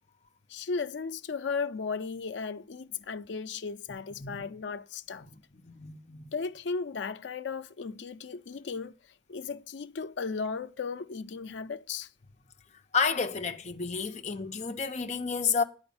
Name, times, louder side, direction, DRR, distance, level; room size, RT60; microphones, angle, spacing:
voice 1, 0.5-5.3 6.3-8.9 9.3-12.1, left 5 dB, 85° left, 0.5 m, -35 dB
voice 2, 3.9-4.3 5.2-6.3 12.9-15.6, left 5 dB, 40° left, 0.7 m, -31 dB
9.5 x 5.0 x 7.0 m
head